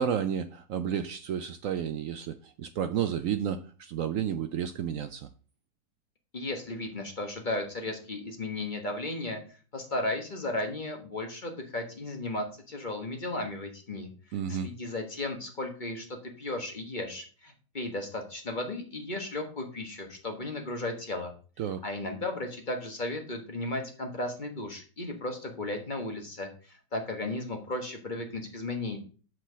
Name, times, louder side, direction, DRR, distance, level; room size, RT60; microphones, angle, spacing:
voice 1, 0.0-5.3 14.3-14.7 21.6-21.8, right 8 dB, 75° right, 0.7 m, -31 dB
voice 2, 6.3-9.4 9.7-14.1 14.5-21.3 21.8-29.0, left 2 dB, 30° left, 1.3 m, -35 dB
6.2 x 5.8 x 6.1 m
omnidirectional pair, 1.9 m